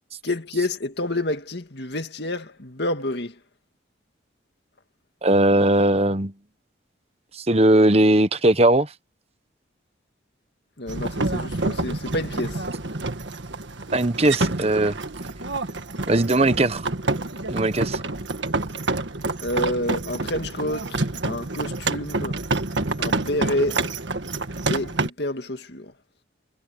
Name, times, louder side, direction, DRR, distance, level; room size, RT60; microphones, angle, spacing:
voice 1, 0.2-3.3 10.8-12.7 19.4-22.4 23.0-23.9 24.7-25.9, left 1 dB, 55° left, 2.2 m, -28 dB
voice 2, 5.2-6.3 7.3-8.9 13.9-15.0 16.1-16.9 17.5-18.0, right 1 dB, 30° right, 1.1 m, -19 dB
sound 1, 10.9-25.1, right 2 dB, 70° right, 1.7 m, -28 dB
head